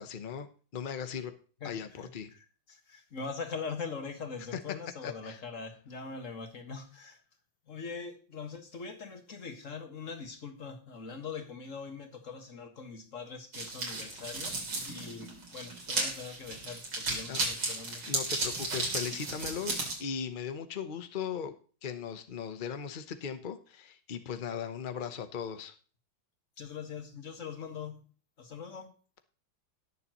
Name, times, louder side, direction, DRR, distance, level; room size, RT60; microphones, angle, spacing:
voice 1, 0.0-1.3 1.6-2.3 4.5-4.6 5.0-5.4 17.3-17.4 18.1-21.6 21.8-25.7, left 7 dB, 85° left, 9 dB, 0.4 m, -38 dB
voice 2, 1.6-7.2 7.7-14.5 14.8-18.0 26.6-28.0 28.4-28.9, left 5 dB, 40° left, 5 dB, 1.9 m, -42 dB
sound 1, 13.5-19.9, right 2 dB, 80° right, 4.0 m, -34 dB
18.5 x 6.9 x 3.0 m, 0.38 s
omnidirectional pair, 2.2 m